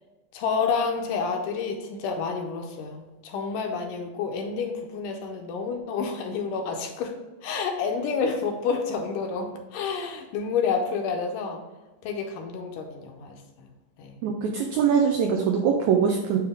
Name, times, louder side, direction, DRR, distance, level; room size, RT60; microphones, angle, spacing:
voice 1, 0.3-7.2 7.4-11.6 12.0-13.7 14.0-14.2, left 5 dB, 80° left, 3 dB, 2.1 m, -29 dB
voice 2, 14.2-16.4, right 7 dB, 85° right, 2 dB, 1.7 m, -22 dB
9.1 x 3.1 x 3.4 m, 1.2 s
omnidirectional pair, 4.0 m